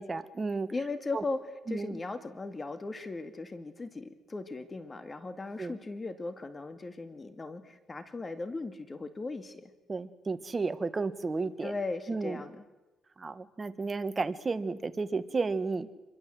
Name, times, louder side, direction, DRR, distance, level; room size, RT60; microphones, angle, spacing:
voice 1, 0.0-0.7 1.1-1.2 1.7-1.9 5.6-5.7 9.9-11.7 12.1-12.4 13.2-15.9, right 4 dB, 30° right, 11 dB, 1.6 m, -32 dB
voice 2, 0.7-9.7 11.6-12.6, left 3 dB, 25° left, 9 dB, 2.1 m, -38 dB
26.5 x 23.0 x 7.8 m, 1.1 s
cardioid pair, 90°, 0 cm